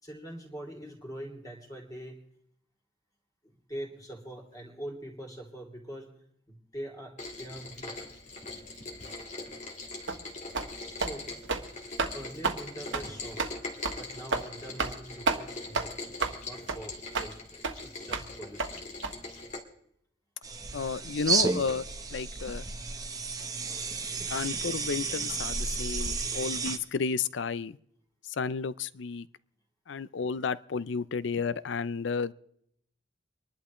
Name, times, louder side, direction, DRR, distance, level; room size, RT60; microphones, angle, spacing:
voice 1, 0.0-2.2 3.4-6.1 6.5-8.0 10.9-11.3 12.1-13.4 13.9-15.9 16.4-18.8, right 1 dB, 20° left, 3.0 m, -43 dB
Rain, 7.2-19.6, left 2 dB, 40° left, 1.9 m, -42 dB
sound 1, 10.1-10.2 10.5-10.7 11.0-11.1 11.4-11.7 12.0-12.1 12.4-12.6 12.9-13.1 13.4-13.5 13.8-14.0 14.3-14.5 14.8-15.0 15.3-15.4 15.7-15.9 16.2-16.4 16.7-16.8 17.1-17.3 17.6-17.7 18.1-18.3 18.6-18.7 19.0-19.1, right 4 dB, 85° right, 1.4 m, -30 dB
sound 2, 20.4-26.8, right 4 dB, 20° right, 1.0 m, -32 dB
voice 2, 20.7-21.8 22.1-22.6 24.3-27.8 28.2-29.3 29.9-32.3, left 5 dB, 75° left, 0.5 m, -32 dB
25.5 x 11.5 x 3.1 m
head